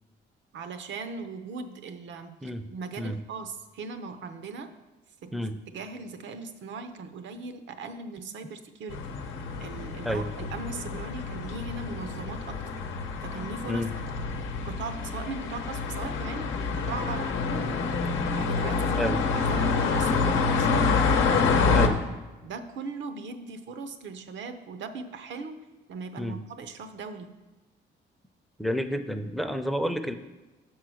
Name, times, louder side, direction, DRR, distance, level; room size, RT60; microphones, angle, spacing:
voice 1, 0.5-4.7 5.2-5.3 5.7-9.2 9.6-12.8 13.2-13.8 14.2-14.3 14.6-17.8 18.3-21.0 21.8-21.9 22.4-27.3, right 4 dB, 70° right, 9 dB, 0.7 m, -39 dB
sound 1, 8.9-21.9, left 4 dB, 85° left, 0.8 m, -27 dB
voice 2, 28.6-30.1, equal, ahead, 9 dB, 0.5 m, -29 dB
6.1 x 4.7 x 6.2 m, 1.2 s
cardioid pair, 90°, 20 cm